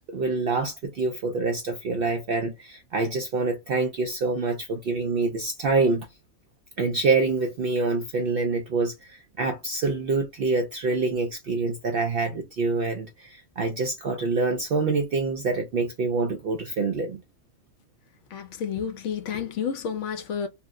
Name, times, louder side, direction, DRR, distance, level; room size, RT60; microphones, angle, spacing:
voice 1, 0.1-6.1 6.8-17.2, right 3 dB, 65° right, 0.5 m, -26 dB
voice 2, 18.3-20.5, left 7 dB, 70° left, 0.8 m, -30 dB
2.8 x 2.0 x 3.5 m
omnidirectional pair, 1.4 m